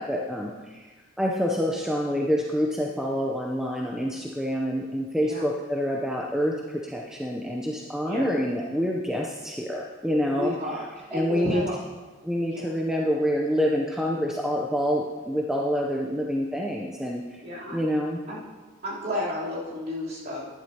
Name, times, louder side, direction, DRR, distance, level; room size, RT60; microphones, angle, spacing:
voice 1, 0.0-10.5 11.1-11.6 12.2-17.4 17.7-18.2, equal, 5° right, -1 dB, 0.5 m, -27 dB
voice 2, 10.3-11.8 12.5-12.6 17.4-17.8 18.3-18.4 18.8-20.5, left 1 dB, 45° right, -8 dB, 3.4 m, -32 dB
11.5 x 10.5 x 2.8 m, 1.3 s
head